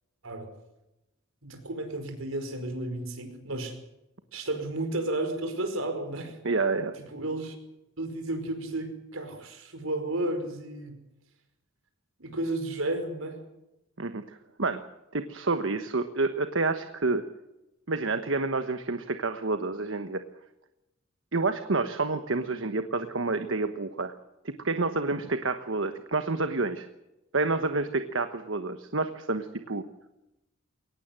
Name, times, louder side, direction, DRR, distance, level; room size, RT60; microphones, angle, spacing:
voice 1, 1.4-3.8 4.3-6.4 6.9-7.6 8.0-11.0 12.2-13.4, right 2 dB, 85° right, 7 dB, 5.2 m, -32 dB
voice 2, 6.4-7.0 14.0-14.2 14.6-14.8 15.1-17.2 17.9-20.2 21.3-24.1 24.4-26.9 27.3-29.8, right 3 dB, 70° right, 8 dB, 1.2 m, -29 dB
22.5 x 19.0 x 7.7 m, 0.92 s
head